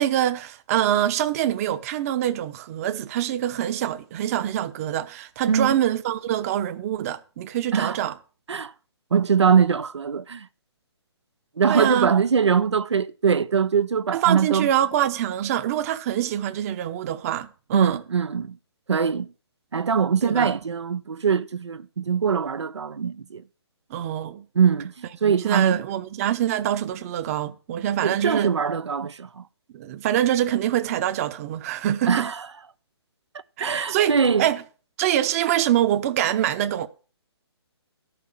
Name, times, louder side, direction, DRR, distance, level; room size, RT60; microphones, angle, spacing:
voice 1, 0.0-8.1 11.7-12.1 14.1-18.0 20.2-20.6 23.9-24.4 25.2-28.5 29.7-32.3 33.6-34.6 35.0-36.9, right 11 dB, 35° right, 0.9 m, -25 dB
voice 2, 9.1-10.5 11.6-14.7 17.7-18.6 18.9-19.3 19.7-23.4 24.5-24.9 25.2-25.8 28.0-29.4 32.1-32.5 33.6-34.5, right 6 dB, 80° right, 0.8 m, -22 dB
13.0 x 6.0 x 7.6 m
hypercardioid pair, 145°, 14 cm